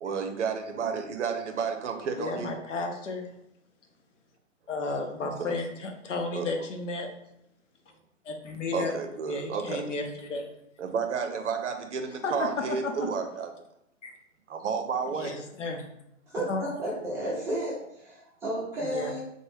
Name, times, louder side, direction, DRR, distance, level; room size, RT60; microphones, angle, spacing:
voice 1, 0.0-2.5 5.2-5.5 6.3-6.5 8.7-9.8 10.8-13.5 14.6-15.3, right 6 dB, 60° right, 6 dB, 0.6 m, -31 dB
voice 2, 2.2-3.3 4.7-7.1 8.2-8.9 9.3-10.5 12.2-13.1 14.0-14.1 15.1-15.9 16.5-16.7 18.8-19.1, left 3 dB, 65° left, 3 dB, 0.7 m, -33 dB
voice 3, 16.3-19.2, right 1 dB, 5° right, -7 dB, 0.5 m, -32 dB
3.0 x 2.1 x 3.2 m, 0.77 s
figure-of-eight pair, 125°, 39 cm